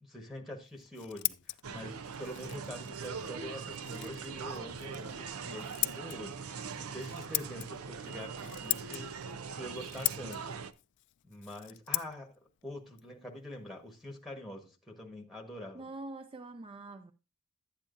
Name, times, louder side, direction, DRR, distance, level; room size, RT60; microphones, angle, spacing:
voice 1, 0.0-10.6 11.2-12.3 12.6-15.8, left 1 dB, ahead, 1.2 m, -45 dB
Scissors, 0.6-14.2, left 20 dB, 55° left, 0.3 m, -41 dB
sound 1, 1.6-10.7, right 5 dB, 80° right, 0.6 m, -42 dB
voice 2, 15.7-17.1, right 2 dB, 25° right, 0.4 m, -44 dB
11.5 x 8.6 x 2.5 m
head